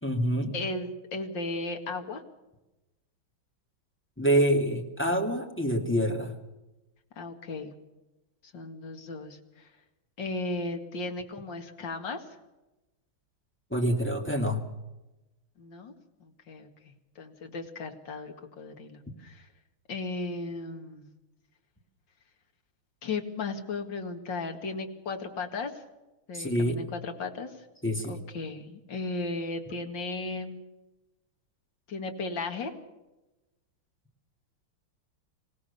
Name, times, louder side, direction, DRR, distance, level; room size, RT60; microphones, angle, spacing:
voice 1, 0.0-0.5 4.2-6.3 13.7-14.7 26.3-26.8 27.8-28.2, equal, 5° left, 2 dB, 2.3 m, -26 dB
voice 2, 0.5-2.2 7.2-7.7 8.5-9.7 10.2-12.2 15.6-15.9 16.2-19.5 19.9-21.1 23.0-25.8 26.3-27.6 28.1-30.6 31.9-32.7, left 3 dB, 65° left, 4 dB, 2.8 m, -36 dB
26.0 x 17.0 x 7.0 m, 1.0 s
omnidirectional pair, 2.2 m